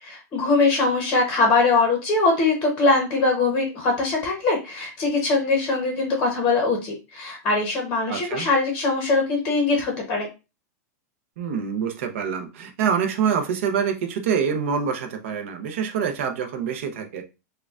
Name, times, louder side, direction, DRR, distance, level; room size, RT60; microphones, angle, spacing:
voice 1, 0.0-10.3, left 3 dB, 15° left, 0.9 m, -22 dB
voice 2, 8.1-8.5 11.4-17.2, right 7 dB, 45° right, 0.7 m, -26 dB
6.5 x 2.3 x 2.4 m
supercardioid pair, 180°, 9 cm